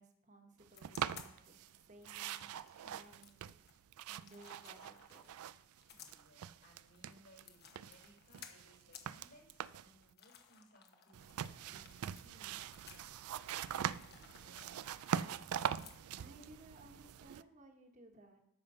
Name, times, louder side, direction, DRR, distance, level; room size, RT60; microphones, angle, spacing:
voice 1, 0.0-2.5 2.8-3.5 4.1-5.5 16.2-18.4, right 1 dB, 35° right, 4 dB, 1.3 m, -60 dB
sound 1, 0.7-16.4, left 7 dB, 45° left, 1.1 m, -59 dB
sound 2, 0.8-1.8 2.0-5.8 6.0-7.4 7.8-10.0 11.1-17.4, right 9 dB, 90° right, 0.4 m, -43 dB
voice 2, 5.9-15.3, equal, 65° left, 0 dB, 4.6 m, -66 dB
13.5 x 5.4 x 5.6 m, 0.78 s
head